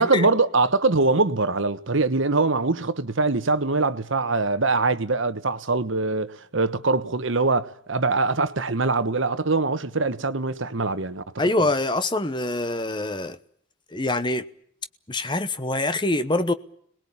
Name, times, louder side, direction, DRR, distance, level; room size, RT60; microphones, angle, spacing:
voice 1, 0.0-11.2 11.6-11.7, right 3 dB, 70° right, 1.2 m, -23 dB
voice 2, 11.4-13.4 13.9-14.4 15.1-16.5, left 2 dB, 20° left, 1.0 m, -24 dB
26.5 x 20.0 x 8.6 m
head